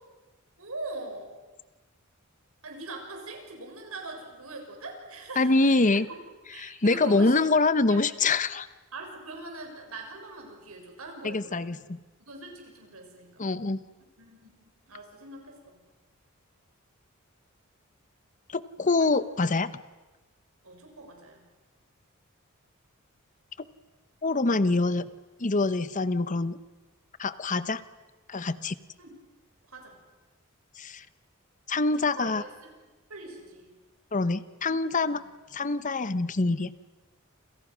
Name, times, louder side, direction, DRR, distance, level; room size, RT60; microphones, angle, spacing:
voice 1, 0.6-1.3 2.6-5.8 6.5-7.5 7.9-8.0 8.9-11.8 12.2-13.4 14.2-15.8 19.0-19.1 20.6-21.5 29.0-29.2 29.7-30.0 32.2-32.5 33.1-33.7 35.1-35.3, right 2 dB, 85° right, 3 dB, 6.7 m, -42 dB
voice 2, 5.4-6.1 6.6-8.7 11.2-12.0 13.4-13.8 18.5-19.7 23.6-23.7 24.2-25.1 25.4-26.6 27.2-27.8 28.3-28.7 30.8-31.0 31.7-32.4 34.1-35.2 35.5-36.7, left 3 dB, 35° left, 14 dB, 0.9 m, -25 dB
29.0 x 28.0 x 6.3 m, 1.2 s
head